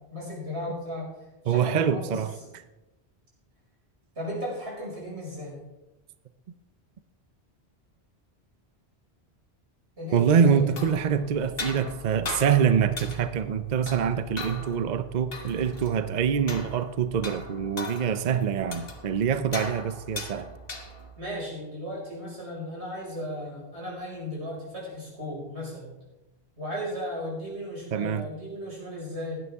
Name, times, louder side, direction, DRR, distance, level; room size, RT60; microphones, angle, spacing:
voice 1, 0.1-1.1 1.4-2.5 4.2-5.6 10.0-10.7 21.2-25.9 26.6-29.4, equal, 90° right, -4 dB, 5.8 m, -35 dB
voice 2, 1.5-2.6 10.1-20.5 27.9-28.2, right 7 dB, 50° right, 11 dB, 0.6 m, -25 dB
sound 1, 10.5-21.2, left 3 dB, 60° left, 1.5 m, -40 dB
16.0 x 11.0 x 3.5 m, 1.0 s
omnidirectional pair, 1.1 m